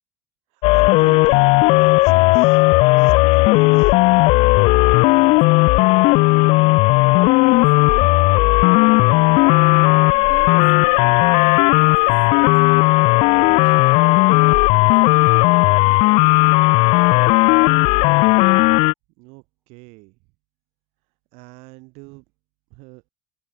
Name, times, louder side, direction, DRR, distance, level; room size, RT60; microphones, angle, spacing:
voice 1, 0.5-2.6 3.0-3.9 19.2-20.2 21.3-22.2 22.7-23.0, right 28 dB, 65° right, 2.6 m, -44 dB
sound 1, 0.6-18.9, left 25 dB, 55° left, 0.3 m, -14 dB
voice 2, 3.4-4.0 4.6-6.6 6.9-13.0 13.3-15.4, right 6 dB, 20° right, 5.2 m, -47 dB
cardioid pair, 170°, 12 cm